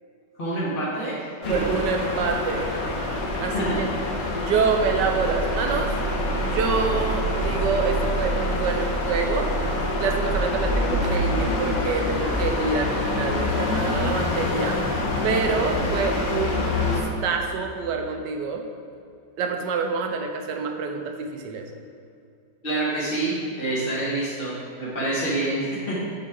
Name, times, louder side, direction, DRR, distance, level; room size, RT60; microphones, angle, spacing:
voice 1, 0.4-1.2 1.4-1.5 3.5-3.8 22.6-26.0, right 1 dB, 35° left, -9 dB, 1.4 m, -27 dB
sound 1, 1.4-17.0, left 1 dB, 90° left, 1.6 m, -26 dB
voice 2, 1.5-2.7 3.4-3.9 4.3-5.9 6.4-9.5 10.0-14.8 15.2-18.6 19.4-21.6, right 5 dB, 80° right, 4 dB, 1.3 m, -27 dB
8.5 x 4.8 x 3.6 m, 2.5 s
omnidirectional pair, 1.9 m